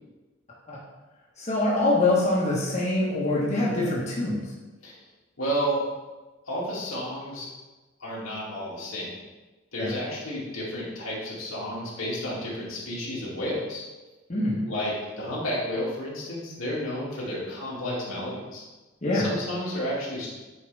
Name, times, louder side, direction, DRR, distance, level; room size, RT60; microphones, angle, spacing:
voice 1, 1.4-4.4 9.8-10.0 14.3-14.6 19.0-19.3, left 2 dB, 35° left, -6 dB, 1.4 m, -24 dB
voice 2, 5.4-5.8 6.5-7.5 8.0-9.1 9.7-13.8 14.7-18.6 19.1-20.3, equal, 90° left, -6 dB, 2.5 m, -31 dB
8.8 x 4.8 x 3.5 m, 1.2 s
head